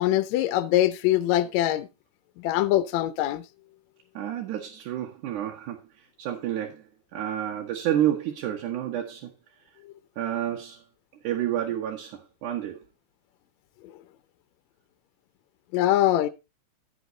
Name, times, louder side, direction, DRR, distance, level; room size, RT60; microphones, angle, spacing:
voice 1, 0.0-1.9 2.4-3.4 15.7-16.3, left 13 dB, 75° left, 1.9 m, -23 dB
voice 2, 4.1-9.3 10.2-10.8 11.2-12.8, right 11 dB, 85° right, 2.7 m, -30 dB
11.5 x 7.4 x 3.8 m
omnidirectional pair, 3.5 m